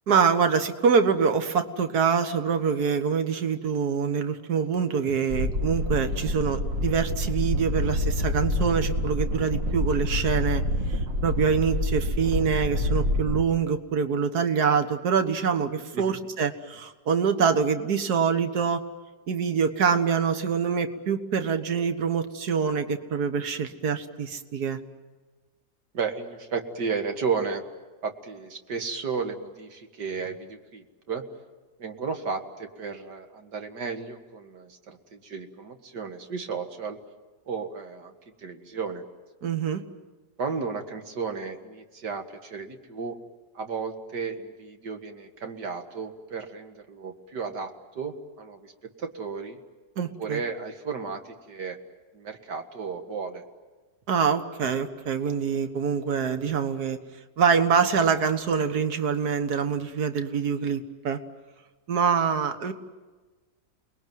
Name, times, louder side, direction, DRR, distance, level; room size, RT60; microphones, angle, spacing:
voice 1, 0.1-10.6 11.2-18.8 19.3-24.8 39.4-39.8 50.0-50.4 54.1-57.0 57.4-61.2 61.9-62.7, right 6 dB, 70° right, 9 dB, 2.0 m, -25 dB
sound 1, 5.3-13.4, left 1 dB, 55° right, 2.0 m, -27 dB
voice 2, 25.9-27.6 28.0-31.2 31.8-37.0 37.5-38.1 38.4-39.0 40.4-43.2 43.5-49.6 50.0-51.8 52.1-53.4, right 5 dB, 90° right, 6 dB, 2.5 m, -33 dB
29.0 x 21.0 x 9.3 m, 1.3 s
omnidirectional pair, 1.8 m